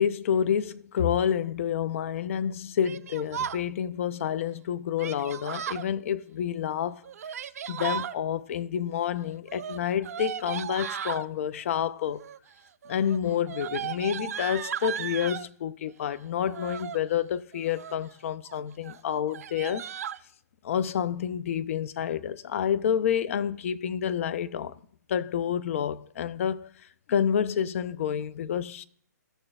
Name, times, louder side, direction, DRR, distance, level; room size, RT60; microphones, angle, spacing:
voice 1, 0.0-7.0 7.7-12.2 12.9-19.9 20.6-24.7 25.1-26.7 27.1-28.8, left 8 dB, 50° left, 0.5 m, -29 dB
Yell, 2.8-3.6 5.0-5.9 7.0-8.1 9.5-11.3 12.1-12.5 12.8-15.5 16.4-17.0 17.5-18.1 18.5-18.6 18.8-19.0 19.3-20.2, right 8 dB, 55° right, 0.4 m, -36 dB
15.0 x 6.6 x 2.3 m
hypercardioid pair, 135°, 10 cm